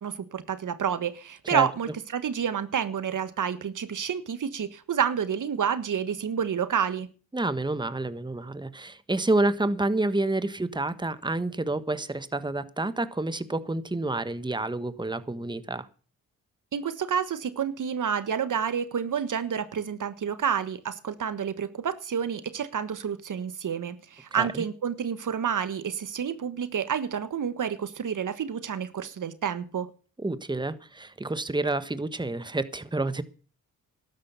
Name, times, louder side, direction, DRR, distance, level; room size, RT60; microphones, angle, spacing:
voice 1, 0.0-7.1 16.7-29.9, right 7 dB, 65° right, 13 dB, 1.4 m, -29 dB
voice 2, 7.3-15.9 24.3-24.6 30.2-33.2, right 2 dB, 15° right, 13 dB, 1.4 m, -29 dB
12.5 x 10.5 x 6.9 m, 0.38 s
supercardioid pair, 55°, 34 cm